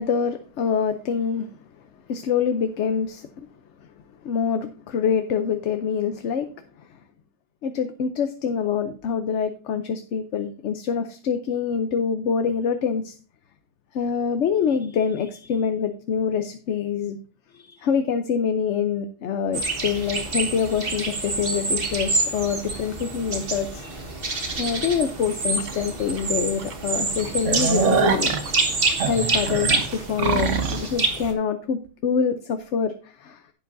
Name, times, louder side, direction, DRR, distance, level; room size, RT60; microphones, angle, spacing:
voice 1, 0.0-1.5 2.1-3.5 4.2-6.5 6.8-6.9 7.6-13.2 13.9-17.2 17.5-24.1 24.6-28.3 29.0-33.4, left 6 dB, 70° left, 8 dB, 1.0 m, -25 dB
sound 1, 19.5-31.3, right 3 dB, 50° right, 1.6 m, -27 dB
sound 2, 25.6-25.7 26.2-26.3 26.6-26.7 27.1-30.9, right 5 dB, 75° right, 1.4 m, -24 dB
11.0 x 8.8 x 2.6 m, 0.38 s
omnidirectional pair, 1.3 m